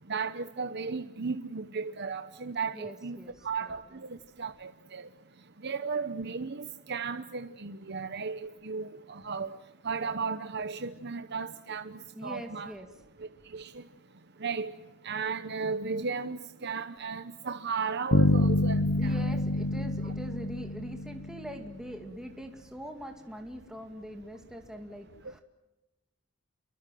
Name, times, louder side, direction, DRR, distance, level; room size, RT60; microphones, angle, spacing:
voice 1, 0.1-5.1 5.6-9.6 9.8-12.7 13.2-13.8 14.4-14.7 15.0-19.3 20.0-20.1, right 5 dB, 50° right, 1.0 m, -35 dB
voice 2, 2.7-3.3 12.1-12.9 19.0-25.4, equal, 5° right, 2.3 m, -43 dB
sound 1, 18.1-21.8, left 1 dB, 60° left, 0.9 m, -27 dB
29.5 x 23.5 x 7.7 m
head